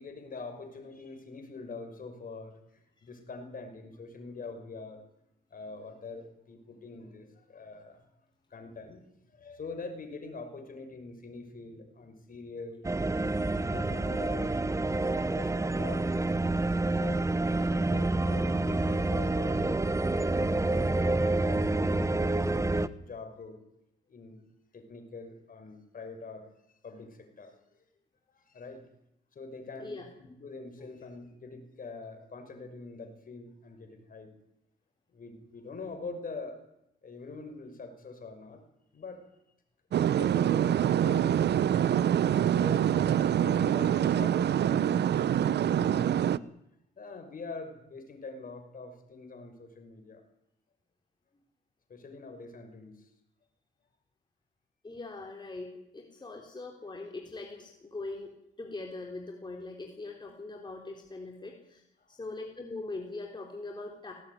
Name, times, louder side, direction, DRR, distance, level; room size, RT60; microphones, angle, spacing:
voice 1, 0.0-5.0 5.5-8.0 8.5-9.0 9.3-12.9 13.7-14.6 15.0-16.0 16.9-20.7 21.0-22.6 22.9-23.6 24.1-24.4 24.7-27.6 28.3-28.9 29.3-34.3 35.1-36.6 37.0-38.7 38.9-39.3 40.1-41.7 42.4-46.1 47.0-50.2 51.9-53.1 62.0-62.1, left 3 dB, 45° left, 7 dB, 5.8 m, -44 dB
sound 1, 12.8-22.9, right 2 dB, 15° right, 1.0 m, -28 dB
sound 2, 39.9-46.4, right 10 dB, 60° right, 0.8 m, -25 dB
voice 2, 54.8-61.8 62.1-64.1, left 2 dB, 20° left, 1 dB, 3.8 m, -41 dB
18.0 x 17.5 x 9.7 m, 0.82 s
cardioid pair, 90°, 20 cm